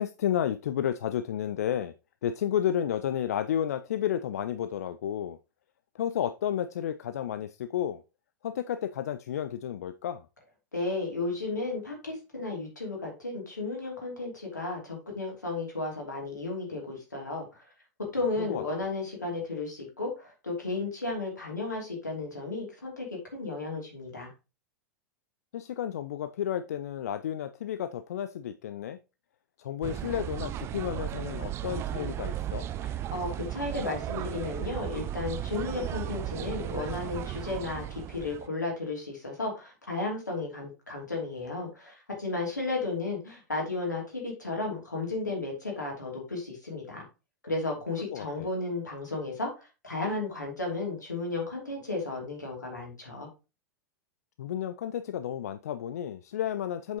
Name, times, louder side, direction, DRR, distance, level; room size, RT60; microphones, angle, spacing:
voice 1, 0.0-1.9 2.2-5.4 5.9-8.0 8.4-10.3 18.4-18.6 25.5-29.0 29.6-32.7 48.1-48.5 54.4-57.0, left 10 dB, 60° left, 0.4 m, -32 dB
voice 2, 10.7-17.5 18.1-23.1 23.3-24.3 33.1-47.0 47.4-53.3, left 3 dB, 80° left, 2.8 m, -34 dB
sound 1, 29.8-38.5, right 12 dB, 25° right, 0.4 m, -35 dB
7.4 x 5.6 x 2.9 m
figure-of-eight pair, 90°, 9 cm